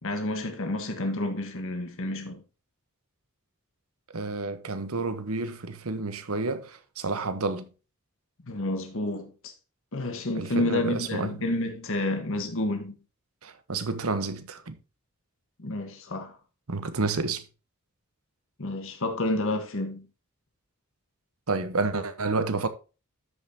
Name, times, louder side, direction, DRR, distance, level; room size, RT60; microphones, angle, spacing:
voice 1, 0.0-2.4 8.4-9.5 9.9-13.0 15.6-16.4 18.6-20.1, left 1 dB, 65° left, 1.4 m, -30 dB
voice 2, 4.1-7.7 10.3-11.3 13.4-14.8 16.7-17.4 21.5-22.7, right 3 dB, 90° right, 1.1 m, -30 dB
13.0 x 5.5 x 2.9 m
head